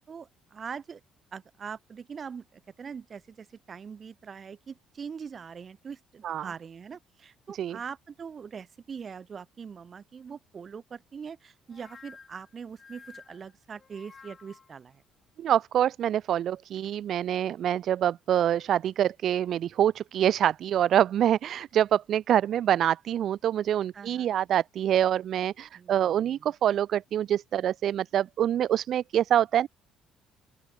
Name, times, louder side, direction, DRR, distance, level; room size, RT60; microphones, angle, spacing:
voice 1, 0.1-1.0 1.3-15.0 23.9-24.3 25.7-26.5, right 6 dB, 40° right, 5.1 m, -42 dB
sound 1, 11.7-14.8, left 5 dB, 35° left, 2.5 m, -52 dB
voice 2, 15.4-29.7, right 10 dB, 60° right, 0.3 m, -25 dB
open air
supercardioid pair, 80°, 0 cm